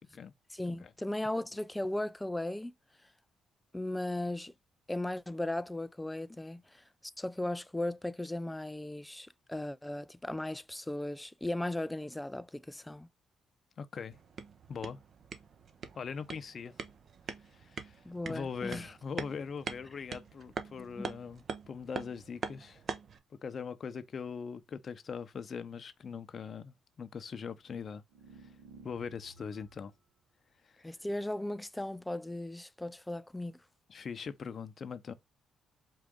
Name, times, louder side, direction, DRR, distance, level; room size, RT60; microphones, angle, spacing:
voice 1, 0.5-2.7 3.7-4.5 4.9-6.8 7.2-13.1 18.0-18.9 20.8-21.1 30.8-33.6, left 1 dB, 10° left, 0.3 m, -37 dB
voice 2, 13.8-14.2 14.7-15.0 16.0-16.7 17.5-18.0 18.3-22.8 23.4-28.0 28.4-28.5 28.8-29.9 33.9-35.1, left 6 dB, 50° left, 0.6 m, -41 dB
sound 1, 14.1-23.2, right 5 dB, 55° right, 0.8 m, -44 dB
sound 2, 28.1-29.9, right 3 dB, 80° right, 1.0 m, -55 dB
4.7 x 2.5 x 3.6 m
supercardioid pair, 70°, 0 cm